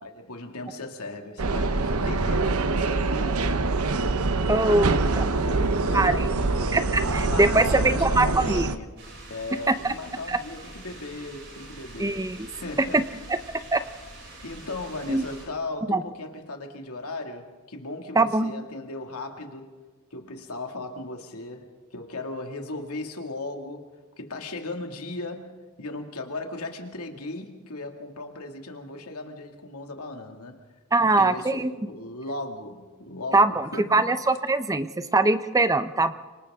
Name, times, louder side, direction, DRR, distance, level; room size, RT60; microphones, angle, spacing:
voice 1, 0.0-3.8 4.7-9.0 9.3-13.1 14.4-19.7 20.1-23.9 24.2-30.7 31.0-34.1, left 2 dB, 80° left, 2.4 m, -37 dB
sound 1, 1.4-8.8, right 3 dB, 80° right, 0.9 m, -25 dB
voice 2, 4.5-5.2 5.9-6.1 6.7-8.7 9.7-9.9 10.3-10.4 12.0-12.5 12.9-13.0 13.7-13.8 15.1-15.2 15.9-16.0 18.2-18.5 30.9-31.7 33.3-34.9 35.1-36.1, right 2 dB, 15° right, 0.7 m, -22 dB
sound 2, 9.0-15.5, right 2 dB, 55° right, 6.8 m, -45 dB
29.5 x 25.5 x 3.7 m
head